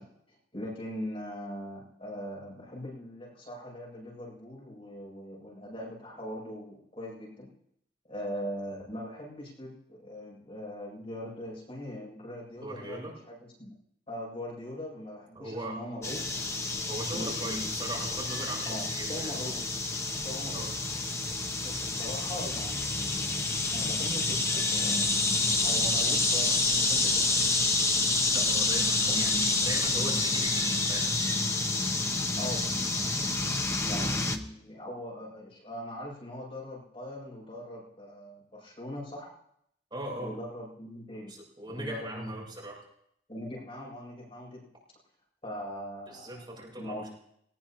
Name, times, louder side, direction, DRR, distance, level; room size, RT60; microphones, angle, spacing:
voice 1, 0.0-7.5 8.0-13.7 14.1-16.2 17.1-17.9 18.6-20.7 21.4-27.3 29.1-29.3 32.4-32.6 33.8-39.3 40.2-41.4 41.7-42.3 43.3-44.6 45.4-47.1, equal, 35° left, -5 dB, 7.5 m, -41 dB
voice 2, 12.6-13.1 15.3-15.8 16.9-19.3 20.5-20.7 28.3-31.1 39.9-40.3 41.3-42.8 46.1-47.1, right 1 dB, 25° right, -3 dB, 6.9 m, -39 dB
sound 1, 16.0-34.4, left 3 dB, 15° left, 0.9 m, -28 dB
21.0 x 19.5 x 3.1 m, 0.75 s
head